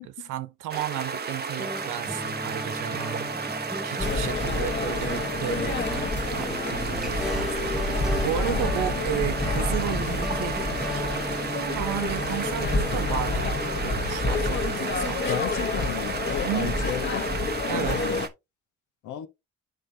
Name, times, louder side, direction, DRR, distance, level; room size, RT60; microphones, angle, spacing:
voice 1, 0.3-3.3 3.8-10.6 10.9-15.3 16.4-16.8 17.7-18.0, right 12 dB, 90° right, 0.7 m, -33 dB
sound 1, 0.7-18.3, right 5 dB, 35° right, 0.8 m, -33 dB
sound 2, 1.6-13.8, equal, ahead, 0.6 m, -36 dB
sound 3, 4.0-18.3, left 3 dB, 35° left, 1.2 m, -29 dB
voice 2, 15.3-18.2 19.0-19.3, left 11 dB, 80° left, 1.1 m, -34 dB
10.5 x 3.8 x 2.7 m
cardioid pair, 90°, 30 cm